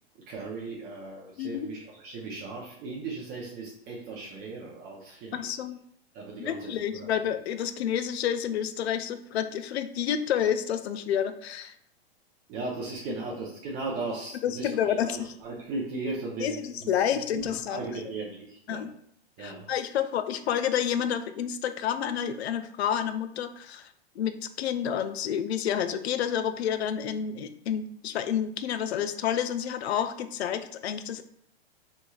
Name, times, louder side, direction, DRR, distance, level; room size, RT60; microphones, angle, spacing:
voice 1, 0.3-5.6 6.1-7.2 12.5-18.9 19.4-19.7, right 3 dB, 30° right, -3 dB, 0.6 m, -37 dB
voice 2, 1.4-1.7 5.3-5.8 6.4-11.7 14.4-15.3 16.4-17.8 18.7-18.9 19.4-23.9 24.2-31.2, left 9 dB, 80° left, 10 dB, 0.5 m, -29 dB
4.2 x 3.2 x 2.3 m, 0.67 s
hypercardioid pair, 135°, 32 cm